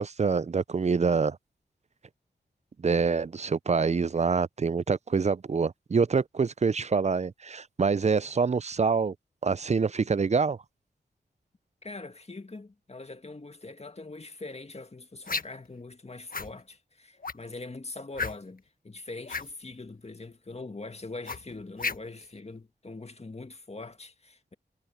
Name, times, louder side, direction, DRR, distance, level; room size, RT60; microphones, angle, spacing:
voice 1, 0.0-1.4 2.8-9.1 9.4-10.6, right 5 dB, 40° right, 0.5 m, -26 dB
voice 2, 11.8-24.5, left 3 dB, 35° left, 2.0 m, -42 dB
sound 1, 15.2-15.7 16.3-16.5 17.2-17.5 18.1-18.6 19.2-19.5 21.3-22.2, left 4 dB, 50° left, 1.5 m, -33 dB
cardioid pair, 45°, 18 cm